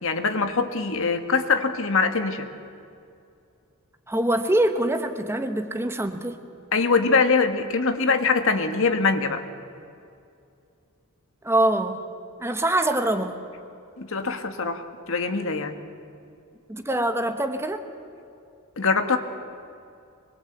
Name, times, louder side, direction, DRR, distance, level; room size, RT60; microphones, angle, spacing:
voice 1, 0.0-2.5 6.7-9.4 14.0-15.8 18.8-19.2, left 4 dB, 65° left, 7 dB, 1.7 m, -23 dB
voice 2, 4.1-6.4 11.4-12.0 12.4-13.3 16.7-17.9, right 1 dB, 10° right, 7 dB, 1.2 m, -24 dB
24.0 x 22.0 x 8.2 m, 2.5 s
head